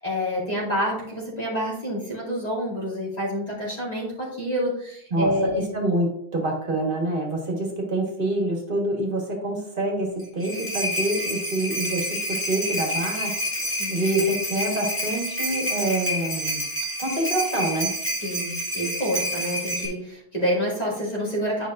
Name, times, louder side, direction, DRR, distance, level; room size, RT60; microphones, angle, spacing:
voice 1, 0.0-5.6 13.8-13.9 18.2-21.7, equal, 40° left, -5 dB, 2.3 m, -27 dB
voice 2, 5.1-16.6 17.0-17.9, right 1 dB, 60° right, 0 dB, 1.6 m, -26 dB
sound 1, 10.2-19.9, equal, 10° left, 1.6 m, -28 dB
10.0 x 5.2 x 2.5 m, 0.72 s
omnidirectional pair, 1.0 m